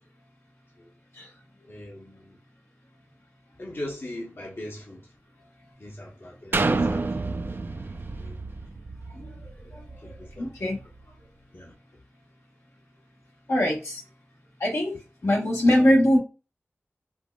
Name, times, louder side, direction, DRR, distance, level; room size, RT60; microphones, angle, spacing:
voice 1, 1.7-2.4 3.6-5.1 5.8-7.1 8.2-8.4 9.7-9.8 10.0-10.7 11.5-11.7, left 1 dB, 55° left, 1.1 m, -39 dB
sound 1, 6.5-10.3 10.8-10.9, right 3 dB, 50° right, 0.4 m, -29 dB
voice 2, 9.1-10.9 13.5-14.0 14.6-16.2, equal, 80° left, 1.4 m, -24 dB
5.0 x 2.0 x 2.4 m
cardioid pair, 40°, 5 cm